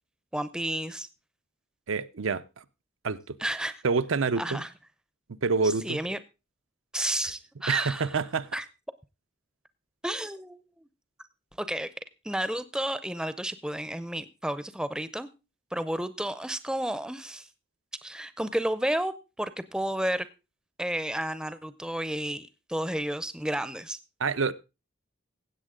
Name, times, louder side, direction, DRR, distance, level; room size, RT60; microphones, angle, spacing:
voice 1, 0.3-1.1 3.4-3.8 4.4-4.7 5.6-6.2 6.9-8.2 8.5-8.6 10.0-10.6 11.6-11.9 12.2-15.3 15.7-17.5 18.0-20.3 20.8-24.0, right 1 dB, 5° right, 0.5 m, -31 dB
voice 2, 1.9-2.6 3.0-3.4 3.8-4.6 5.3-6.0 7.7-8.6 24.2-24.5, right 4 dB, 90° right, 0.6 m, -27 dB
16.0 x 8.2 x 3.7 m
head